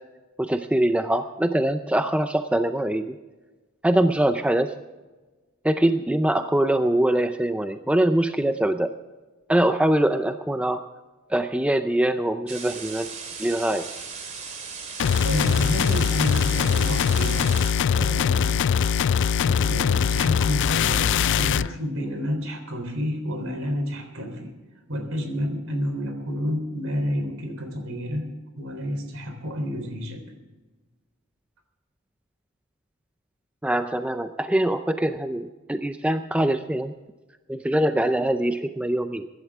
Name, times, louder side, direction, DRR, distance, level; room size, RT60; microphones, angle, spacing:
voice 1, 0.4-3.1 3.8-4.7 5.6-8.9 9.5-10.8 11.3-13.1 13.4-13.9 33.6-36.9 37.5-39.3, right 1 dB, 5° right, 8 dB, 0.5 m, -23 dB
sound 1, 12.5-17.7, right 5 dB, 35° right, 2.5 m, -37 dB
sound 2, 15.0-21.7, left 7 dB, 60° left, 0.4 m, -22 dB
voice 2, 15.2-17.5 17.9-18.6 19.1-24.6 24.9-30.2, equal, 75° right, 5 dB, 3.6 m, -30 dB
23.5 x 12.0 x 3.6 m, 1.2 s
head